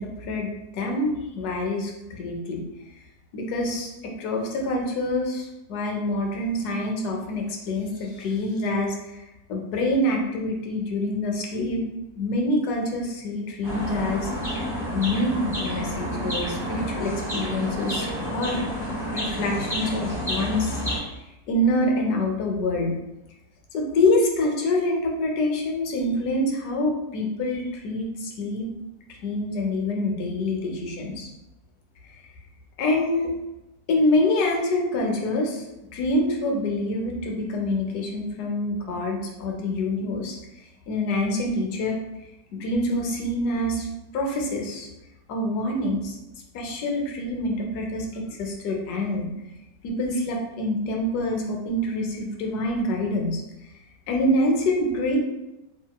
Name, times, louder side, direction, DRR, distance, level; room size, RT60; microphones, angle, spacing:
voice 1, 0.0-2.6 3.3-9.2 9.5-11.8 12.2-14.3 14.9-18.6 19.1-21.1 21.5-22.9 23.7-28.7 29.2-31.3 32.1-32.2 32.8-33.3 33.9-35.7 35.9-40.4 40.9-42.0 42.6-44.9 45.3-46.2 46.5-49.3 49.8-53.4 54.1-55.2, left 1 dB, 75° left, 1 dB, 1.1 m, -26 dB
sound 1, 13.6-21.0, equal, ahead, 0.9 m, -30 dB
2.8 x 2.7 x 2.2 m, 0.96 s
omnidirectional pair, 1.8 m